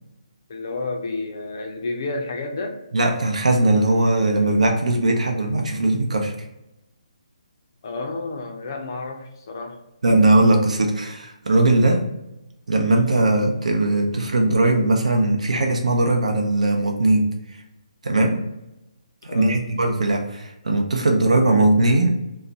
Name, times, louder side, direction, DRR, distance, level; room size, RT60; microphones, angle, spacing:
voice 1, 0.5-2.8 7.8-9.8 19.3-19.6, left 3 dB, 35° left, 4 dB, 0.4 m, -30 dB
voice 2, 2.9-6.4 10.0-12.1 12.7-17.3 18.0-18.4 19.2-22.2, right 2 dB, 75° right, 2 dB, 0.7 m, -19 dB
2.4 x 2.1 x 3.9 m, 0.91 s
hypercardioid pair, 170°, 4 cm